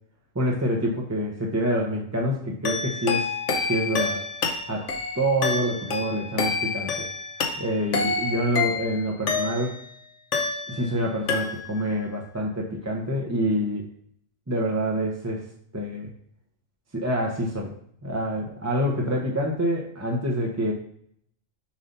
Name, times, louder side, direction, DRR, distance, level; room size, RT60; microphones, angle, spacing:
voice 1, 0.3-3.3 3.7-4.2 4.7-7.1 7.5-9.8 10.7-13.9 14.5-15.5 15.7-16.1 16.9-17.7 18.0-20.7, equal, 15° right, -1 dB, 0.8 m, -26 dB
sound 1, 2.6-9.9 10.3-11.0 11.3-11.9, left 4 dB, 70° left, 1.2 m, -28 dB
7.3 x 2.8 x 5.2 m, 0.65 s
omnidirectional pair, 1.3 m